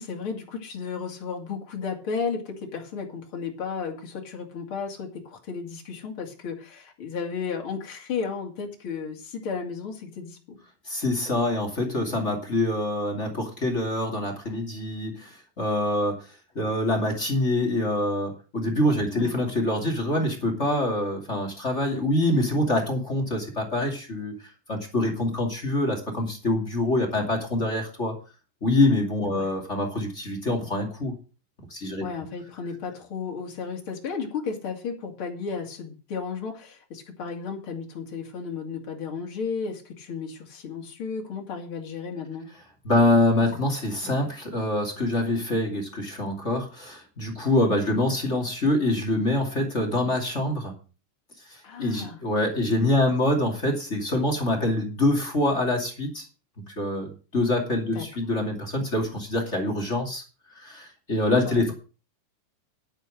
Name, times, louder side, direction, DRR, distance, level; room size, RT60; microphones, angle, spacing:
voice 1, 0.0-10.6 19.1-19.4 29.3-29.5 32.0-42.5 51.6-52.2 57.9-58.1 61.5-61.6, left 5 dB, 45° left, 2 dB, 3.0 m, -34 dB
voice 2, 10.9-16.3 16.5-24.3 24.7-28.1 28.6-31.1 31.7-32.1 42.8-50.7 51.5-56.3 56.6-60.2 60.6-61.7, left 1 dB, 25° left, 4 dB, 2.6 m, -25 dB
10.5 x 8.9 x 6.3 m, 0.35 s
omnidirectional pair, 3.7 m